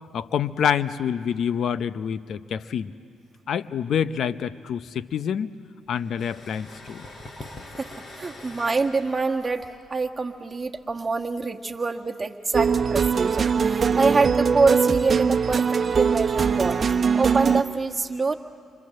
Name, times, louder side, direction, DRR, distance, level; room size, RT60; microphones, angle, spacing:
voice 1, 0.1-2.9 3.5-5.5 5.9-7.0, left 8 dB, 65° left, 14 dB, 0.8 m, -27 dB
sound 1, 5.9-11.4, left 2 dB, 45° left, 4.8 m, -44 dB
voice 2, 7.8-16.8 17.1-18.3, right 4 dB, 25° right, 2 dB, 1.7 m, -25 dB
sound 2, 12.5-17.6, right 6 dB, 45° right, 1.1 m, -21 dB
29.0 x 25.0 x 7.7 m, 2.2 s
supercardioid pair, 60°, 0 cm